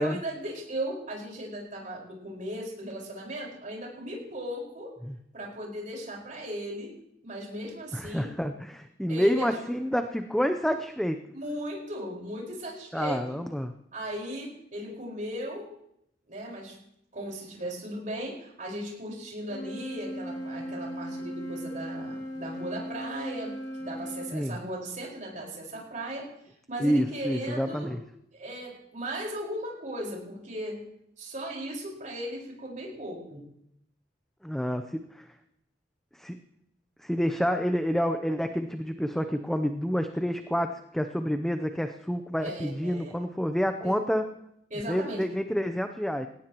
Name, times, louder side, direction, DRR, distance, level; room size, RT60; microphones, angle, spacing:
voice 1, 0.0-4.9 5.3-6.9 7.2-8.3 9.1-9.5 11.3-13.4 13.9-15.7 16.3-16.8 17.1-26.3 26.7-27.9 28.3-30.9 31.2-33.4 42.4-43.2 43.8-44.0 44.7-45.3, right 1 dB, 45° right, -2 dB, 4.9 m, -37 dB
voice 2, 7.9-11.2 12.9-13.7 24.3-24.6 26.8-28.0 34.4-34.8 35.1-35.2 36.2-36.4 37.0-44.2 44.9-46.3, equal, ahead, 7 dB, 0.6 m, -28 dB
Wind instrument woodwind instrument, 19.4-24.4, equal, 70° left, 2.8 m, -37 dB
19.0 x 17.5 x 3.0 m, 0.75 s
head